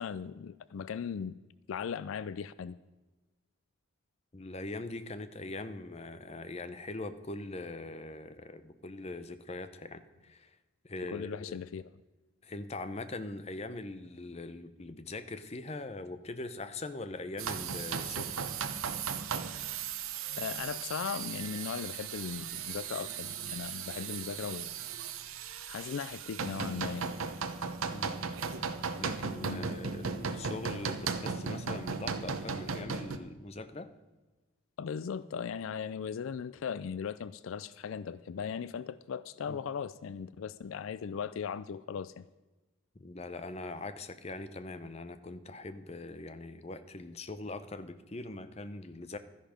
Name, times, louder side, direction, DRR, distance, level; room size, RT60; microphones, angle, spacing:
voice 1, 0.0-1.4 1.7-2.8 11.1-11.9 20.4-24.7 25.7-27.1 29.4-29.7 34.8-42.2, left 6 dB, 75° left, 0.4 m, -38 dB
voice 2, 4.3-10.5 10.8-11.6 12.4-18.4 27.9-28.3 28.9-33.9 39.5-39.6 43.0-49.2, left 2 dB, 30° left, 0.7 m, -42 dB
sound 1, 17.4-33.2, right 5 dB, 80° right, 0.9 m, -37 dB
13.0 x 10.5 x 5.1 m
head